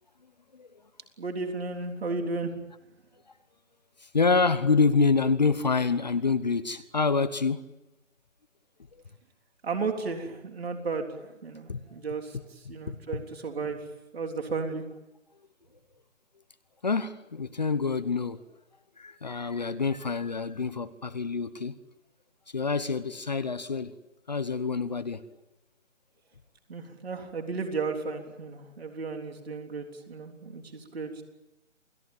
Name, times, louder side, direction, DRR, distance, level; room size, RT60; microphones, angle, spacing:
voice 1, 1.2-2.5 9.6-11.1 11.4-12.4 12.7-13.8 14.1-14.8 26.7-31.2, right 4 dB, 50° right, 4 dB, 3.7 m, -34 dB
voice 2, 4.0-7.7 11.7-11.8 12.3-12.5 12.9-13.2 16.8-18.4 19.0-21.8 22.5-23.9 24.3-25.2, left 4 dB, 35° left, 12 dB, 0.9 m, -27 dB
28.5 x 18.5 x 9.1 m, 0.98 s
figure-of-eight pair, 160°, 39 cm